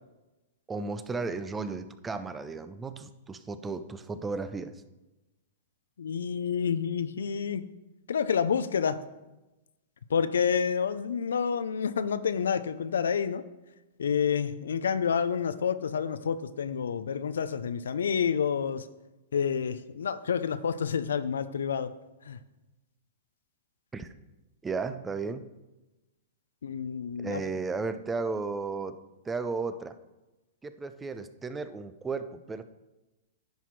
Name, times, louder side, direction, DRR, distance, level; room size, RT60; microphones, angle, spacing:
voice 1, 0.7-4.8 23.9-24.1 24.6-25.5 27.2-29.0 29.3-29.9 30.6-32.6, right 4 dB, 15° right, 12 dB, 0.4 m, -34 dB
voice 2, 6.0-7.7 8.1-9.0 10.1-13.4 14.0-18.9 19.3-21.9 22.3-22.4 26.6-27.4, left 7 dB, 85° left, 14 dB, 0.5 m, -29 dB
10.5 x 4.1 x 4.6 m, 1.0 s
hypercardioid pair, 130°, 0 cm